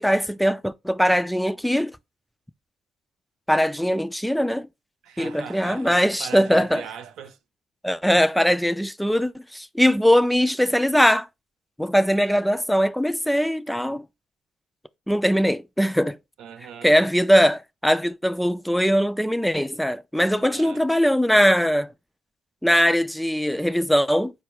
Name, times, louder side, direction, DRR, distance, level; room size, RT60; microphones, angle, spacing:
voice 1, 0.0-1.9 3.5-4.7 5.2-6.8 7.8-11.3 11.8-14.1 15.1-16.2 16.8-21.9 22.6-24.3, equal, 5° left, 0.3 m, -21 dB
voice 2, 5.0-7.4 16.4-16.9 20.4-20.8, right 8 dB, 85° right, 0.6 m, -40 dB
4.2 x 2.3 x 4.6 m
cardioid pair, 90°, 0 cm